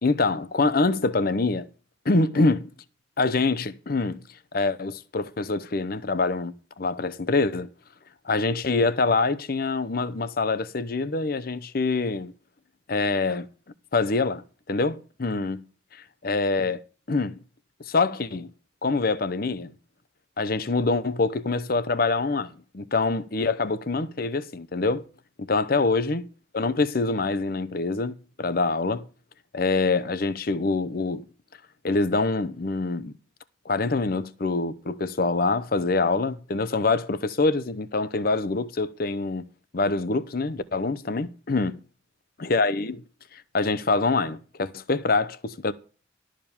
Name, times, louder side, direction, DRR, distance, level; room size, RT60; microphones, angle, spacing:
voice 1, 0.0-1.7 2.1-2.7 3.2-4.2 4.5-7.7 8.2-12.3 12.9-13.5 13.9-15.6 16.2-16.8 17.1-17.4 17.9-18.5 18.8-19.7 20.4-25.0 25.4-26.2 26.5-29.1 29.5-31.2 31.8-33.1 33.7-39.5 39.7-41.8 42.4-43.0 43.3-45.7, left 3 dB, 50° left, 0.7 m, -25 dB
12.5 x 5.0 x 7.1 m
head